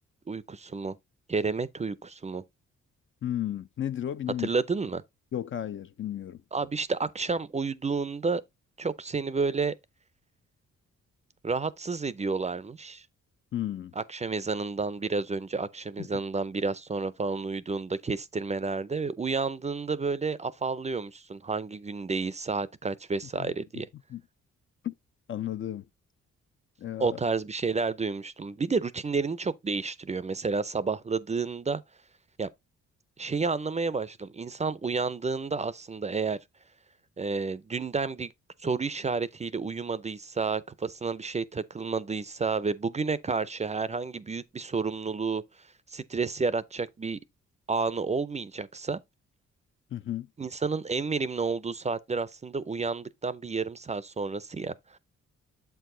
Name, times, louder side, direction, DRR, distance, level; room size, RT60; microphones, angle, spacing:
voice 1, 0.3-1.0 1.3-2.4 4.4-5.0 6.5-8.4 8.8-9.7 11.4-13.0 14.0-23.9 27.0-31.8 32.4-32.5 33.2-36.4 37.2-38.3 38.6-45.4 45.9-47.2 47.7-49.0 50.4-55.0, right 4 dB, 25° right, 0.5 m, -30 dB
voice 2, 3.2-4.5 5.3-6.4 13.5-13.9 16.0-16.2 23.4-23.5 24.1-24.2 24.8-24.9 25.3-25.9 26.8-27.2 49.9-50.3, left 11 dB, 45° left, 0.4 m, -33 dB
7.6 x 4.7 x 3.8 m
cardioid pair, 80°, 29 cm